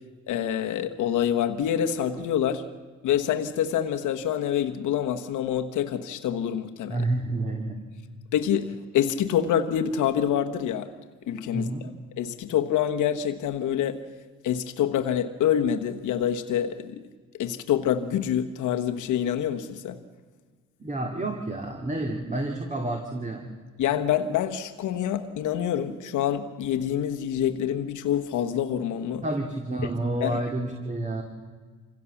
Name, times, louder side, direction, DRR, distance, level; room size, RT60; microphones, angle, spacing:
voice 1, 0.3-2.6 3.0-7.0 8.3-10.9 11.3-11.9 12.2-14.0 14.4-17.0 17.4-20.0 23.8-29.2 30.2-30.4, left 9 dB, 85° left, 1.3 m, -26 dB
voice 2, 6.9-7.8 11.5-11.9 20.8-23.4 29.2-31.2, right 2 dB, 25° right, 2.4 m, -29 dB
25.5 x 16.5 x 7.2 m
cardioid pair, 90°, 30 cm